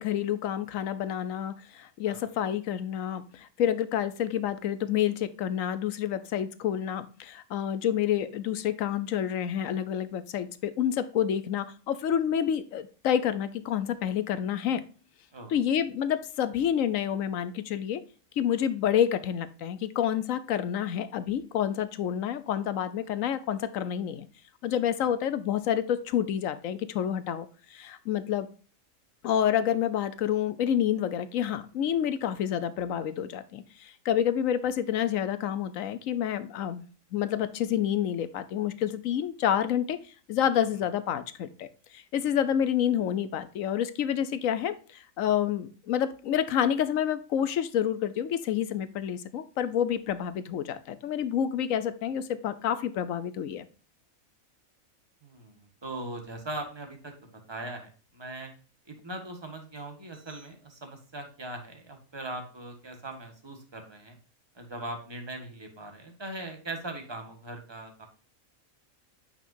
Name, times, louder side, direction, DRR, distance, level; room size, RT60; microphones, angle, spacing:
voice 1, 0.0-14.8 15.5-18.0 18.4-24.3 24.6-28.5 29.2-36.8 37.1-40.0 40.3-41.7 41.9-53.7, left 9 dB, 75° left, 13 dB, 1.1 m, -28 dB
voice 2, 55.2-58.5 58.9-64.2 64.5-68.1, right 2 dB, 20° right, 4 dB, 1.5 m, -40 dB
8.7 x 5.7 x 2.6 m, 0.38 s
omnidirectional pair, 1.4 m